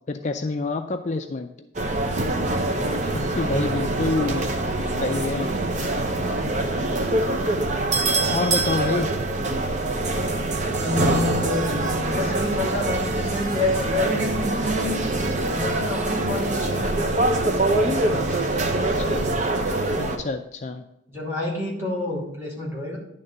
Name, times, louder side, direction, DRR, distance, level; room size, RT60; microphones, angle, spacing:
voice 1, 0.1-1.5 3.1-4.5 4.9-5.5 8.3-9.1 18.7-19.3 20.0-20.8, left 3 dB, 35° left, 6 dB, 0.4 m, -27 dB
sound 1, 1.8-20.2, right 2 dB, 40° right, 0.9 m, -24 dB
voice 2, 10.8-14.9 15.5-17.1 17.7-18.6 21.1-23.0, left 2 dB, 15° right, -5 dB, 2.7 m, -28 dB
10.5 x 3.6 x 6.7 m, 0.85 s
head